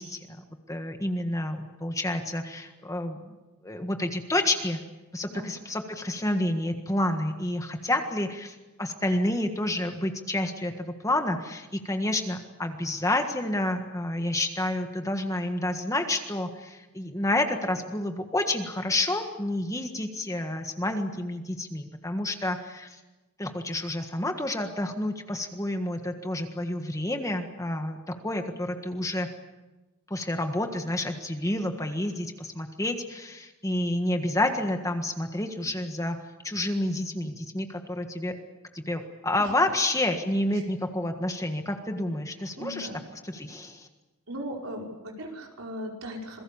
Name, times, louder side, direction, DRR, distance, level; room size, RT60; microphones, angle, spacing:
voice 1, 0.0-3.4 3.6-4.8 5.1-23.0 23.4-29.3 30.1-36.2 36.4-38.4 38.7-42.9 43.2-43.9, left 1 dB, 15° left, 5 dB, 1.6 m, -29 dB
voice 2, 42.5-43.0 44.3-46.4, equal, 65° right, 0 dB, 5.5 m, -37 dB
27.0 x 22.0 x 7.2 m, 1.1 s
head